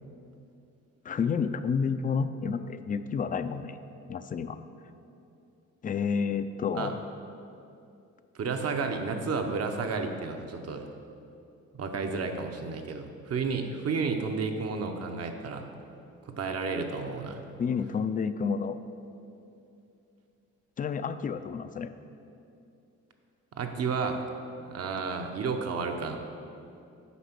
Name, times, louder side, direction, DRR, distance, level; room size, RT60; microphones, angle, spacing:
voice 1, 1.1-3.8 4.1-4.6 5.8-7.0 17.6-18.8 20.8-21.9, left 6 dB, 30° left, 11 dB, 0.4 m, -30 dB
voice 2, 8.3-10.9 11.7-15.7 16.4-17.4 23.6-24.2 24.6-26.2, right 4 dB, 55° right, 5 dB, 0.9 m, -31 dB
8.3 x 5.0 x 6.0 m, 2.7 s
cardioid pair, 90°, 30 cm